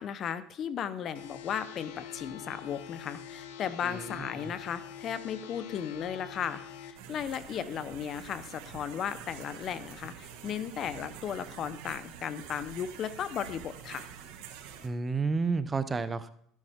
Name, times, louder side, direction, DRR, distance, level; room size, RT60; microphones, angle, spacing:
voice 1, 0.0-14.1, left 8 dB, 45° left, 13 dB, 0.8 m, -36 dB
sound 1, 1.1-6.9, left 8 dB, 85° left, 1.4 m, -45 dB
voice 2, 3.8-4.5 14.8-16.3, right 4 dB, 20° right, 13 dB, 0.6 m, -31 dB
sound 2, 6.9-14.9, right 8 dB, 80° right, 1.7 m, -47 dB
12.5 x 11.0 x 3.6 m, 0.69 s
supercardioid pair, 120°, 0 cm